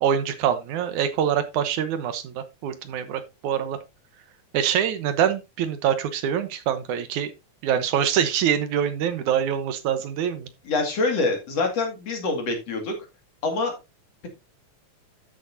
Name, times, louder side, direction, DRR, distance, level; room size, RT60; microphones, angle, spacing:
voice 1, 0.0-3.8 4.5-7.3 7.6-10.5, right 9 dB, 75° right, 10 dB, 2.5 m, -25 dB
voice 2, 10.6-12.9 13.4-13.7, left 3 dB, 55° left, 3 dB, 3.3 m, -25 dB
12.5 x 6.9 x 2.7 m, 0.25 s
omnidirectional pair, 3.5 m